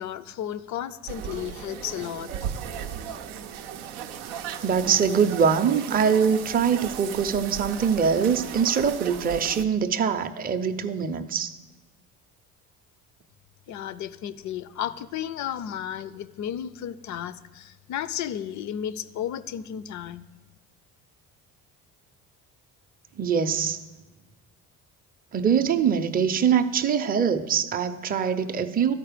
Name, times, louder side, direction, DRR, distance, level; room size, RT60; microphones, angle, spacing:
voice 1, 0.0-2.3 13.7-20.3, left 10 dB, 45° left, 0.4 m, -33 dB
sound 1, 1.1-9.6, right 8 dB, 90° right, 0.5 m, -36 dB
voice 2, 4.6-11.6 23.2-23.8 25.3-28.9, right 7 dB, 20° right, 0.5 m, -23 dB
11.5 x 4.4 x 5.0 m
hypercardioid pair, 60°, 41 cm